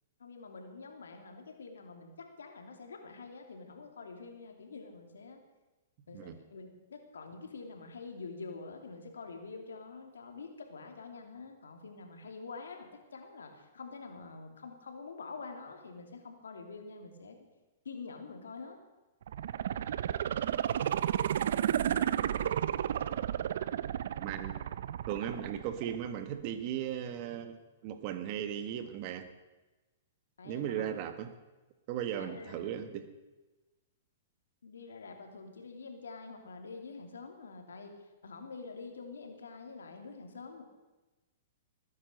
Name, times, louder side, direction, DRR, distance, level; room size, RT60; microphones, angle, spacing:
voice 1, 0.2-5.4 6.1-17.4 17.8-18.8 30.4-31.0 32.1-32.7 34.6-37.9 38.2-40.6, left 4 dB, 85° left, 5 dB, 2.8 m, -46 dB
sound 1, 19.2-26.2 26.6-26.7, right 10 dB, 70° right, 0.5 m, -32 dB
voice 2, 24.2-24.5 25.1-29.3 30.4-31.3 31.9-33.1, right 10 dB, 45° right, 10 dB, 1.6 m, -37 dB
19.5 x 9.8 x 6.7 m, 1.1 s
hypercardioid pair, 130°, 0 cm